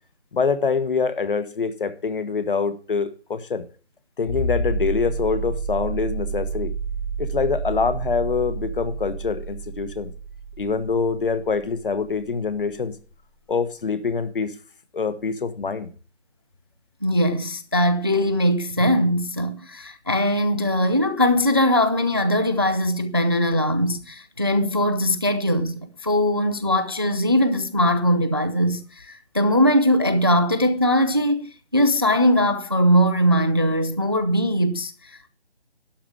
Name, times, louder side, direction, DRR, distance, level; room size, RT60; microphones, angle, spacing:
voice 1, 0.3-3.6 4.2-6.7 7.2-10.1 10.6-12.9 13.5-14.5 14.9-15.9, left 5 dB, 50° left, 1.3 m, -25 dB
sound 1, 4.3-12.7 14.2-14.3, right 3 dB, 5° left, 1.1 m, -30 dB
voice 2, 17.0-35.3, equal, 25° right, 0.4 m, -21 dB
12.0 x 5.0 x 8.3 m
figure-of-eight pair, 155°, 33 cm